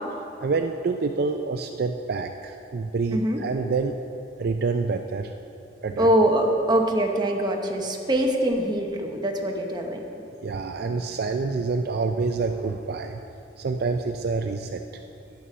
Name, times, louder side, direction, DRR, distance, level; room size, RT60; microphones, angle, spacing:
voice 1, 0.4-3.9 4.4-5.3 5.8-6.1 10.4-13.2 13.6-15.0, right 4 dB, 55° right, 6 dB, 0.4 m, -27 dB
voice 2, 3.1-3.4 6.0-10.0, right 1 dB, 25° right, 2 dB, 0.9 m, -23 dB
10.5 x 7.0 x 6.1 m, 2.9 s
head